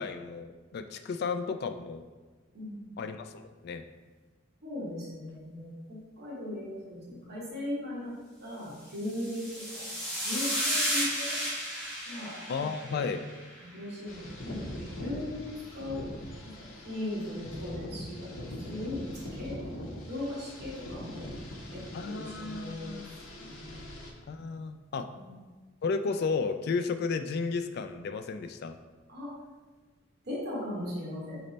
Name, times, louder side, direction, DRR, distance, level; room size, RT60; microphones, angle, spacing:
voice 1, 0.0-2.1 3.0-3.9 12.5-13.2 21.9-23.2 24.3-25.1 25.8-28.8, left 4 dB, 50° left, 8 dB, 0.3 m, -33 dB
voice 2, 2.5-3.0 4.6-8.1 8.4-11.4 12.1-12.4 12.9-13.0 13.6-16.0 16.4-19.6 20.1-21.3 21.7-23.0 23.3-23.8 25.1-25.4 29.1-29.3 30.2-31.4, left 1 dB, 55° right, -6 dB, 1.2 m, -38 dB
sound 1, 9.0-13.5, equal, ahead, 1.3 m, -33 dB
sound 2, 14.1-24.1, left 1 dB, 90° left, 0.8 m, -42 dB
4.1 x 3.3 x 4.0 m, 1.3 s
head